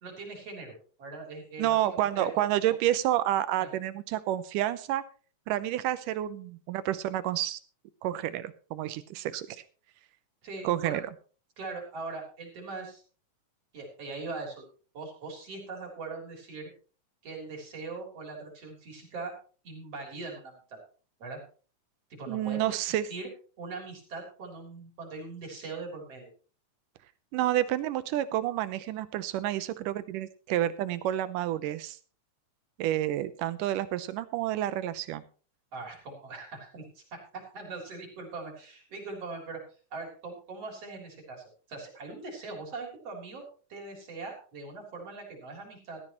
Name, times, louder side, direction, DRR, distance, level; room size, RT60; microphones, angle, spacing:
voice 1, 0.0-1.8 2.2-2.4 3.6-3.7 10.4-11.0 11.6-13.0 13.7-14.6 14.9-16.7 17.2-19.3 19.6-20.8 21.2-21.4 22.1-23.3 23.6-26.3 35.7-39.6 39.9-46.0, right 3 dB, 50° right, 1 dB, 4.5 m, -41 dB
voice 2, 1.6-5.0 5.5-7.6 8.0-9.6 10.6-11.0 22.3-23.1 27.3-32.0 32.8-35.2, right 13 dB, 90° right, 15 dB, 2.4 m, -29 dB
16.0 x 13.5 x 3.0 m, 0.38 s
omnidirectional pair, 3.6 m